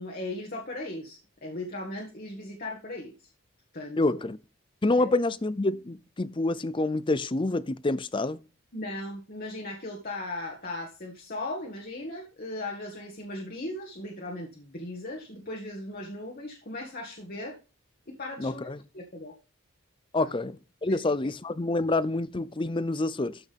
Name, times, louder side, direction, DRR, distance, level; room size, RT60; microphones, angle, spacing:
voice 1, 0.0-3.3 3.7-4.2 5.0-5.1 8.7-17.6 18.1-18.7 18.9-19.3 20.2-20.4 20.9-21.0, left 2 dB, 45° left, 1.8 m, -37 dB
voice 2, 4.0-4.4 4.8-8.4 18.4-18.8 20.1-23.4, left 2 dB, 25° left, 0.5 m, -27 dB
13.5 x 6.2 x 3.5 m
head